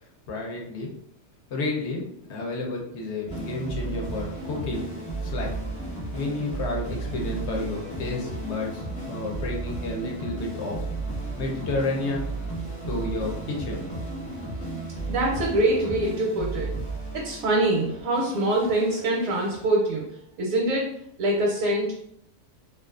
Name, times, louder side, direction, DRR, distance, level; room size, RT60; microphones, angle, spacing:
voice 1, 0.3-0.9 1.5-4.9 5.2-5.6 6.1-10.8 11.4-12.4 12.9-13.8, left 2 dB, 65° left, 0 dB, 0.8 m, -31 dB
sound 1, 3.3-20.0, right 2 dB, 35° left, 0.8 m, -34 dB
voice 2, 15.1-16.8 17.1-20.1 20.4-20.9 21.2-21.9, right 1 dB, 80° right, -2 dB, 1.0 m, -24 dB
2.4 x 2.3 x 2.3 m, 0.72 s
omnidirectional pair, 1.4 m